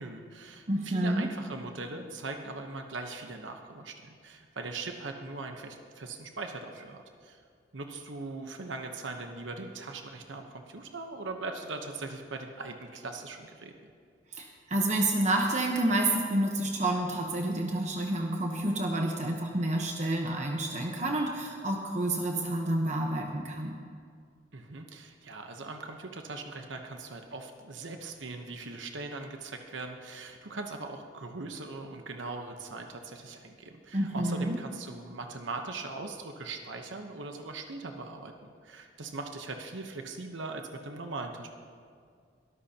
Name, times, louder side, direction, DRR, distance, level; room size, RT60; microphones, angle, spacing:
voice 1, 0.0-7.4 7.7-13.7 24.5-41.6, right 3 dB, 85° right, 4 dB, 1.0 m, -40 dB
voice 2, 0.7-1.3 14.3-23.8 33.9-34.6, right 1 dB, 40° right, 1 dB, 1.0 m, -29 dB
22.0 x 13.5 x 2.9 m, 2.2 s
head